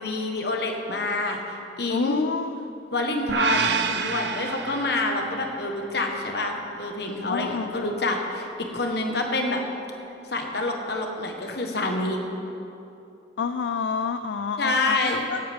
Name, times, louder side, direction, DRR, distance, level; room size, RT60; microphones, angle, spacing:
voice 1, 0.0-1.4 1.8-2.2 2.9-9.6 10.3-12.2 14.6-15.2, left 2 dB, 60° left, 2 dB, 1.4 m, -27 dB
voice 2, 1.9-2.7 7.3-8.1 13.4-15.4, left 5 dB, 75° left, 10 dB, 0.4 m, -29 dB
sound 1, 3.3-5.5, right 5 dB, 70° right, 0.6 m, -28 dB
16.0 x 11.5 x 3.6 m, 2.8 s
head